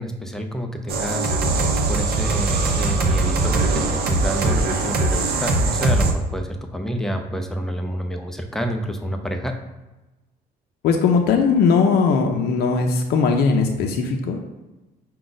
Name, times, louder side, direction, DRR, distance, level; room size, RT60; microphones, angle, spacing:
voice 1, 0.0-9.6, equal, 5° left, 4 dB, 0.4 m, -28 dB
sound 1, 0.9-6.1, right 3 dB, 65° right, 0.7 m, -21 dB
voice 2, 10.8-14.4, left 5 dB, 70° left, 3 dB, 0.5 m, -19 dB
4.9 x 2.3 x 3.9 m, 1.1 s
cardioid pair, 110°, 17 cm